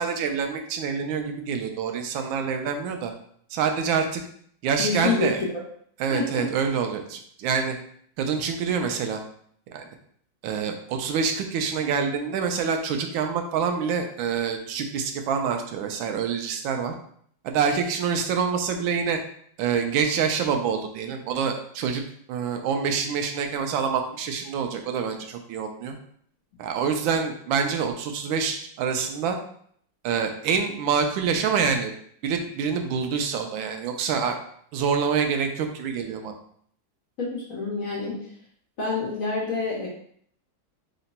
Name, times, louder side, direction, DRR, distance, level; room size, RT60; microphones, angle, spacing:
voice 1, 0.0-3.1 3.5-4.2 4.6-5.4 6.0-7.7 8.2-9.2 9.7-9.8 10.4-16.9 17.4-19.2 19.6-22.0 22.3-26.0 26.6-29.4 30.0-31.9 32.2-34.4 34.7-36.3, right 6 dB, 90° right, 5 dB, 1.3 m, -26 dB
voice 2, 4.8-5.3 6.1-6.5 37.2-38.3 38.8-39.9, left 4 dB, 55° left, -4 dB, 1.1 m, -27 dB
3.8 x 2.2 x 4.0 m, 0.63 s
omnidirectional pair, 2.1 m